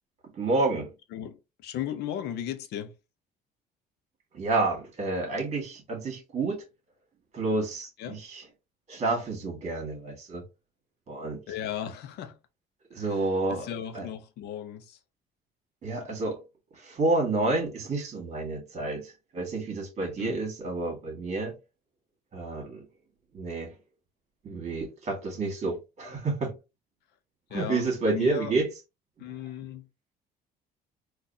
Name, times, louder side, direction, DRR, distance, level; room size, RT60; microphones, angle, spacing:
voice 1, 0.3-0.9 4.3-6.6 7.3-8.4 8.9-10.4 11.1-11.4 12.9-14.1 15.8-16.4 16.8-21.6 22.3-22.9 23.3-23.7 24.4-26.5 27.5-28.7, right 3 dB, 40° right, 1.8 m, -29 dB
voice 2, 1.1-2.9 8.0-8.2 11.5-12.4 13.0-13.2 13.5-15.0 20.0-20.4 27.5-28.6 29.2-29.8, left 10 dB, 80° left, 0.7 m, -36 dB
4.0 x 2.5 x 2.7 m
cardioid pair, 110°, 17 cm